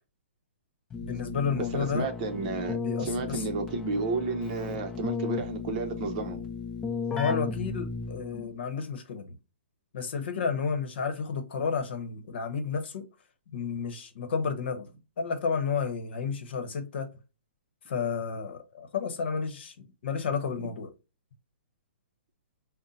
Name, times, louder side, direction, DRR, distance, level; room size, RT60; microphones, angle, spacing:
Keyboard (musical), 0.9-8.5, left 5 dB, 15° left, 0.6 m, -35 dB
voice 1, 1.0-2.1 2.8-3.5 7.1-9.3 9.9-13.0 13.5-14.9 15.2-17.1 17.9-20.9, left 5 dB, 60° left, 0.9 m, -31 dB
voice 2, 1.7-6.4 8.3-8.5, right 3 dB, 40° right, 0.7 m, -32 dB
5.3 x 2.1 x 2.6 m
hypercardioid pair, 150°, 7 cm